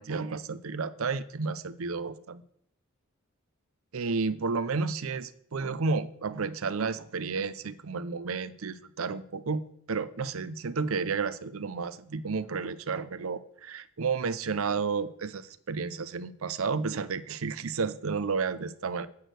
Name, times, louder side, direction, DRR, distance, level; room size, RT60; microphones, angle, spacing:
voice 1, 0.0-2.4 3.9-19.1, right 4 dB, 90° right, 15 dB, 0.6 m, -32 dB
8.5 x 6.4 x 7.7 m, 0.69 s
head